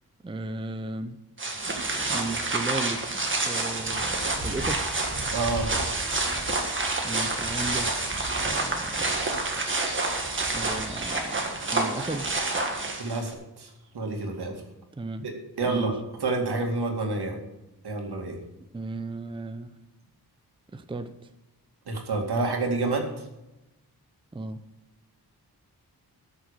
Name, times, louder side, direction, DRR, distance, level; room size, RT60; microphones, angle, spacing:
voice 1, 0.2-1.2 2.1-3.0 3.5-4.9 7.0-7.9 8.4-9.2 10.5-11.4 11.7-12.3 15.0-15.3 15.6-15.9 18.7-19.7 20.7-21.1 24.3-24.6, right 2 dB, 15° right, 9 dB, 0.6 m, -35 dB
sound 1, 1.4-13.3, right 2 dB, 30° right, 1.7 m, -28 dB
voice 2, 5.3-5.7 13.0-14.6 15.2-15.3 15.6-17.4 17.8-18.4 21.9-23.2, right 3 dB, 80° right, 3 dB, 2.4 m, -28 dB
14.0 x 6.4 x 6.7 m, 0.94 s
wide cardioid pair, 175°, 38 cm